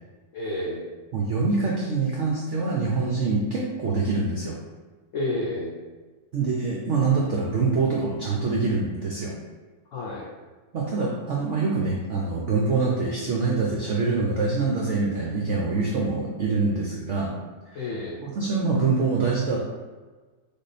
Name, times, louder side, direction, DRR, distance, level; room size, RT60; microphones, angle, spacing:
voice 1, 0.3-0.9 5.1-5.8 9.9-10.3 17.7-18.2, left 1 dB, 65° left, -4 dB, 0.8 m, -30 dB
voice 2, 1.1-4.6 6.3-9.3 10.7-17.3 17.7-17.8 18.2-19.6, right 4 dB, 75° right, -2 dB, 0.6 m, -25 dB
3.6 x 3.6 x 4.1 m, 1.3 s
omnidirectional pair, 2.0 m